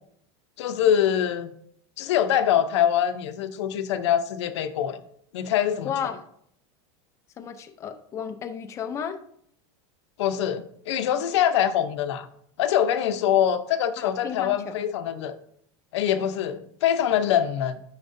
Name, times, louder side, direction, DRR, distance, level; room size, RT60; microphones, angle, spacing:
voice 1, 0.6-1.5 2.0-5.0 5.3-5.9 10.2-12.3 12.6-15.3 15.9-17.8, left 10 dB, 85° left, 10 dB, 0.8 m, -24 dB
voice 2, 5.8-6.2 7.4-9.2 14.0-14.8, left 7 dB, 20° left, 7 dB, 0.6 m, -33 dB
10.0 x 6.0 x 2.7 m, 0.67 s
supercardioid pair, 165°, 14 cm